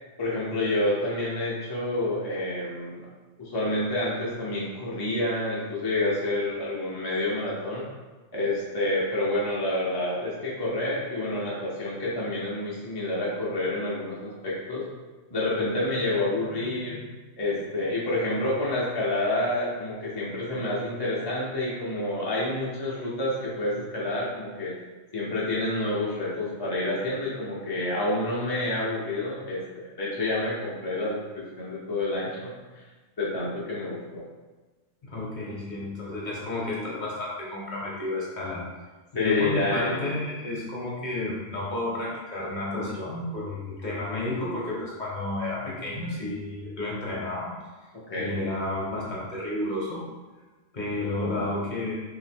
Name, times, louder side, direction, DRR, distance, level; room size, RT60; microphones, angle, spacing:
voice 1, 0.2-3.1 3.4-7.8 8.3-14.8 15.3-17.0 17.4-24.7 25.1-32.8 33.2-34.2 39.1-40.0 48.1-48.3, left 1 dB, 25° left, -7 dB, 0.6 m, -28 dB
voice 2, 35.0-38.7 39.1-47.5 48.2-50.0 50.7-52.0, left 2 dB, 40° left, -5 dB, 1.0 m, -31 dB
3.1 x 2.8 x 4.3 m, 1.2 s
omnidirectional pair, 1.3 m